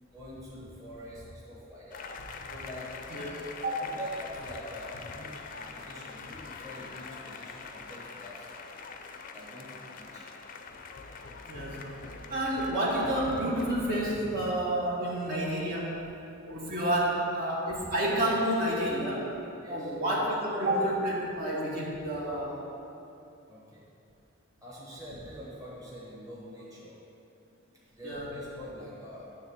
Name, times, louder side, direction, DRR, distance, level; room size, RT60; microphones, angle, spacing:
voice 1, 0.1-2.0 2.5-2.9 3.8-8.5 9.3-10.3 19.5-20.0 23.5-23.8 24.6-27.0 27.9-29.3, equal, 15° right, -7 dB, 1.5 m, -45 dB
sound 1, 1.9-14.1, left 4 dB, 40° left, 0.4 m, -44 dB
voice 2, 11.5-11.9 12.3-16.0 16.5-19.3 19.7-22.6 28.0-28.3, right 1 dB, 45° right, -6 dB, 1.4 m, -29 dB
9.4 x 3.5 x 7.0 m, 2.8 s
head